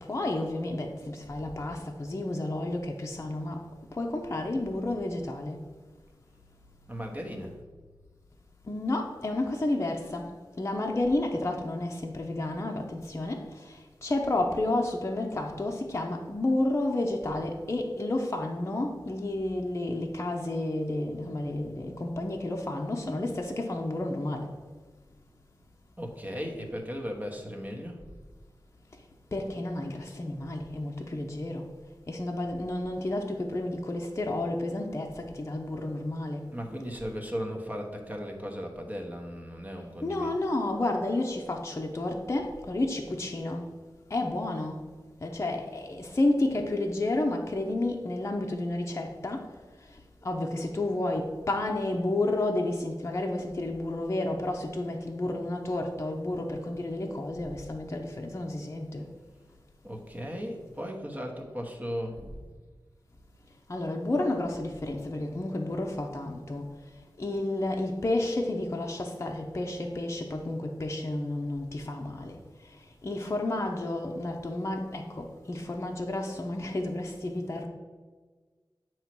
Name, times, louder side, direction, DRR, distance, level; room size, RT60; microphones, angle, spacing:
voice 1, 0.0-3.6 3.9-5.6 8.7-10.2 10.6-13.4 14.0-24.5 29.3-31.6 32.1-36.4 40.0-43.6 44.1-44.8 45.2-49.4 50.2-59.0 63.7-66.7 67.2-72.4 73.0-77.7, left 2 dB, 35° left, 1 dB, 0.7 m, -31 dB
voice 2, 6.9-7.5 26.0-28.0 36.5-40.3 59.8-62.4, equal, 20° right, 2 dB, 1.1 m, -36 dB
9.0 x 3.1 x 6.0 m, 1.4 s
wide cardioid pair, 100°, 8 cm